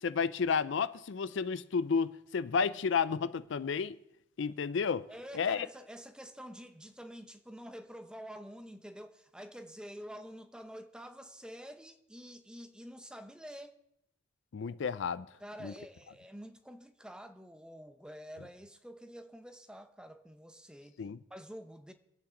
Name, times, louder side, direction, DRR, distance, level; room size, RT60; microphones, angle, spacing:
voice 1, 0.0-4.0 4.4-5.1 5.3-5.7 14.5-15.3 15.6-15.7 21.0-21.2, left 5 dB, 70° left, 0.4 m, -31 dB
voice 2, 5.1-13.7 15.4-21.0 21.3-21.9, equal, 5° right, 0.8 m, -48 dB
25.5 x 8.7 x 3.8 m
head